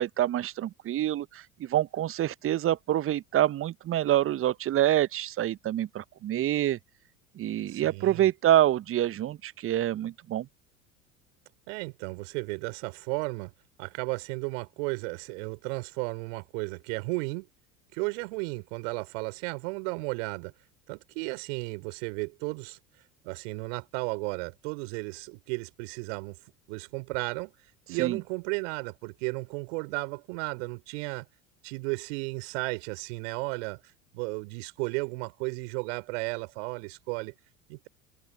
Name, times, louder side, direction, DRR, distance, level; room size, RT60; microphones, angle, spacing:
voice 1, 0.0-6.8 7.4-10.5 28.0-28.2, right 12 dB, 30° right, 1.0 m, -26 dB
voice 2, 7.7-8.3 11.7-13.5 13.8-17.5 17.9-20.5 20.9-22.8 23.2-26.4 26.7-27.5 27.9-31.3 31.6-37.3 37.7-37.9, right 31 dB, 60° right, 4.1 m, -34 dB
figure-of-eight pair, 70°, 41 cm